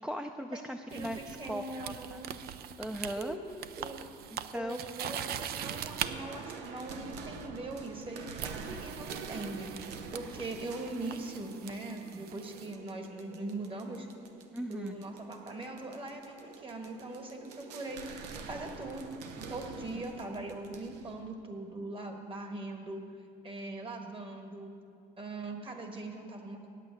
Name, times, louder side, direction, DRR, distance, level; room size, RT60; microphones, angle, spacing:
voice 1, 0.0-2.2 2.8-3.4 4.3-4.8 14.5-14.9 19.9-20.0, equal, 5° right, 5 dB, 0.4 m, -38 dB
voice 2, 0.5-1.1 1.4-2.3 3.2-4.0 4.5-14.1 14.7-23.0 23.4-24.7 25.2-26.7, right 2 dB, 30° right, 4 dB, 1.5 m, -41 dB
sound 1, 0.9-6.1 7.4-7.6 8.4-12.7, right 10 dB, 65° right, 0.5 m, -42 dB
sound 2, 5.6-21.3, right 5 dB, 90° right, 0.8 m, -46 dB
8.8 x 8.3 x 8.3 m, 2.4 s
cardioid pair, 110°, 17 cm